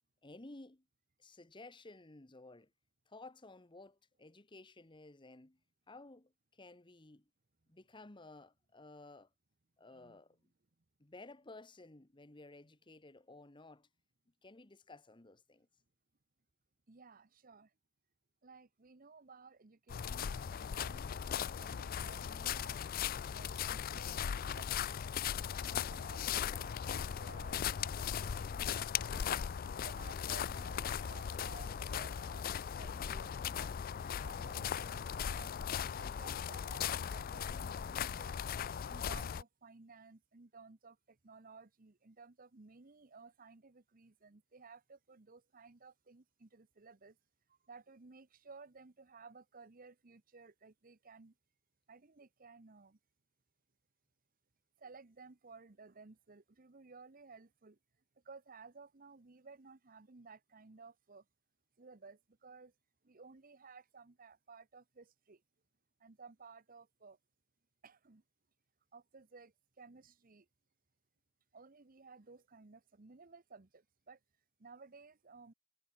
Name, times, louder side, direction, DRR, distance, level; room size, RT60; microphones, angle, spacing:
voice 1, 0.2-0.8 1.2-2.7 3.1-5.6 5.9-7.2 7.7-9.3 9.8-10.4 11.0-13.9 14.4-15.7, left 2 dB, 25° left, 1.1 m, -55 dB
voice 2, 16.9-17.7 18.4-25.0 25.6-29.3 29.8-35.5 35.9-38.4 38.9-47.2 47.5-51.3 51.9-53.0 54.8-57.8 58.2-61.2 61.8-62.7 63.0-65.4 66.0-67.2 67.8-68.2 68.9-70.5 71.5-74.2 74.6-75.5, right 4 dB, 45° right, 0.9 m, -57 dB
sound 1, 19.9-39.4, left 8 dB, 45° left, 0.4 m, -38 dB
head